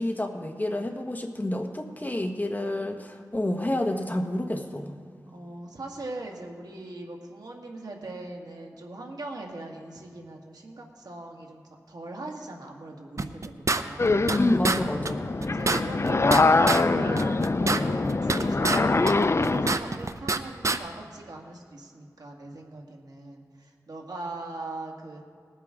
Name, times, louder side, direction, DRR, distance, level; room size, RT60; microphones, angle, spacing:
voice 1, 0.0-4.9 14.4-15.3, left 1 dB, 25° left, 4 dB, 1.3 m, -29 dB
voice 2, 5.3-11.6 11.9-14.4 14.8-25.2, right 2 dB, 80° right, 0 dB, 1.8 m, -40 dB
sound 1, 13.2-14.4 14.6-14.8 15.1-15.2 15.4-16.8 17.2-18.8 19.1-20.4 20.6-20.8, right 3 dB, 50° right, 0.7 m, -26 dB
sound 2, 14.0-19.8, left 3 dB, 45° left, 0.5 m, -24 dB
20.5 x 8.4 x 3.7 m, 2.2 s
wide cardioid pair, 50°, 7 cm